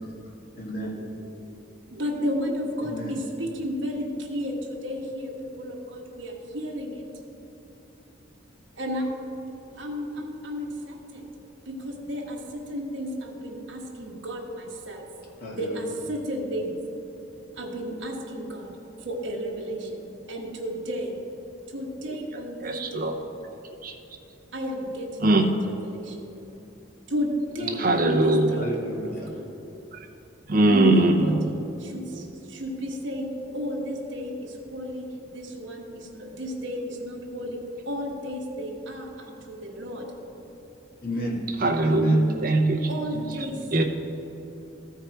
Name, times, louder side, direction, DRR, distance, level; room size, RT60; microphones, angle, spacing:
voice 1, 0.6-0.9 2.8-3.2 15.4-15.9 27.6-28.0 28.5-29.3 41.0-41.4 41.8-42.2 43.1-43.2, equal, 45° left, -3 dB, 1.8 m, -33 dB
voice 2, 1.9-4.6 4.8-5.3 5.6-7.0 8.8-9.1 9.8-11.2 11.7-12.4 12.7-15.0 15.5-16.8 17.6-18.7 19.0-20.0 20.3-21.1 21.7-23.1 24.5-26.2 27.1-28.7 29.0-29.1 30.7-31.4 31.8-32.2 32.5-35.1 35.3-37.6 37.9-39.3 39.6-40.1 42.9-43.6, equal, 70° right, -1 dB, 1.2 m, -32 dB
voice 3, 22.3-23.2 23.8-23.9 25.2-25.5 27.7-28.6 29.9-30.1 30.5-31.4 32.1-32.2 41.6-43.0 43.7-43.8, right 2 dB, 45° right, 2 dB, 0.7 m, -21 dB
14.0 x 4.7 x 4.5 m, 3.0 s
head